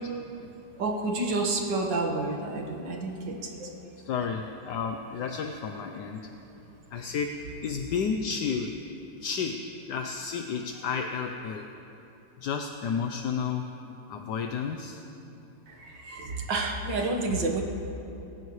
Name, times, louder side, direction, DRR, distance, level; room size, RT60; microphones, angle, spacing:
voice 1, 0.8-3.7 16.0-17.6, right 3 dB, 85° right, 1 dB, 2.2 m, -29 dB
voice 2, 4.0-6.2 6.9-7.3 7.6-8.7 9.2-9.6 9.9-11.6 12.4-13.6 14.1-15.0, left 6 dB, 75° left, 4 dB, 1.3 m, -31 dB
27.5 x 14.5 x 3.2 m, 2.9 s
omnidirectional pair, 1.9 m